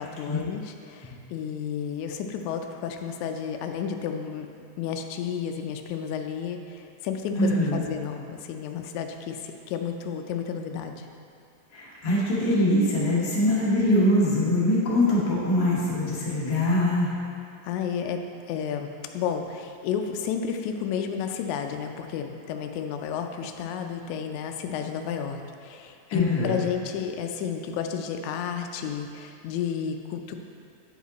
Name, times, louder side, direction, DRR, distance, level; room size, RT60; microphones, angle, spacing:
voice 1, 0.0-4.5 4.8-11.1 17.6-30.3, left 7 dB, 85° left, 5 dB, 1.6 m, -32 dB
voice 2, 7.4-7.8 11.7-17.1 26.1-26.6, left 1 dB, 45° left, -8 dB, 1.3 m, -23 dB
9.1 x 5.1 x 4.0 m, 2.4 s
omnidirectional pair, 3.9 m